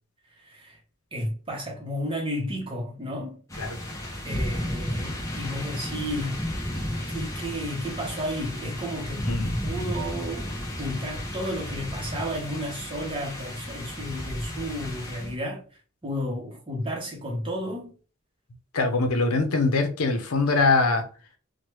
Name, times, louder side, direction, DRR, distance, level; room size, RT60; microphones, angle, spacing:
voice 1, 0.4-0.8 1.1-3.4 4.2-6.5 7.1-9.3 9.6-10.5 10.8-15.6 16.0-17.9, equal, 25° right, 0.7 m, -32 dB
sound 1, 3.5-15.3, equal, 15° left, 0.6 m, -33 dB
voice 2, 18.7-21.0, left 3 dB, 80° left, 0.6 m, -23 dB
3.1 x 2.1 x 3.0 m
head